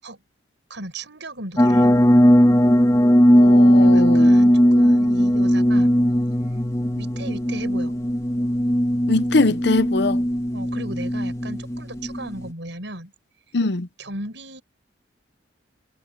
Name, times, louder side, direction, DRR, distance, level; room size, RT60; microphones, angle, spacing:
voice 1, 0.7-1.9 3.8-5.9 7.0-7.9 10.5-13.1 14.0-14.6, right 1 dB, 65° right, 8.0 m, -36 dB
sound 1, 1.6-12.5, equal, 15° left, 1.9 m, -18 dB
voice 2, 3.3-4.3 9.1-10.2 13.5-13.9, left 3 dB, 60° left, 0.8 m, -22 dB
head